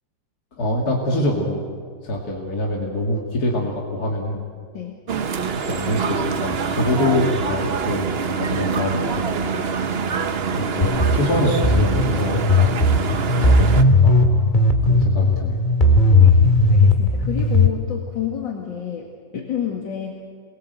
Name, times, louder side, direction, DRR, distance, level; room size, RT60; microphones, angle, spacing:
voice 1, 0.6-1.7 2.0-4.4 5.6-8.1 8.4-9.2 10.5-12.5 12.8-13.0 13.4-14.3 14.8-15.6 16.0-16.1, left 1 dB, 55° left, -1 dB, 3.0 m, -25 dB
sound 1, 5.1-13.8, right 5 dB, 45° right, 0.8 m, -25 dB
sound 2, 10.8-17.7, left 2 dB, 25° left, 2.2 m, -16 dB
voice 2, 15.2-15.6 16.2-16.4 16.7-20.2, left 8 dB, 85° left, 0 dB, 2.9 m, -30 dB
28.0 x 22.5 x 7.9 m, 2.1 s
omnidirectional pair, 2.0 m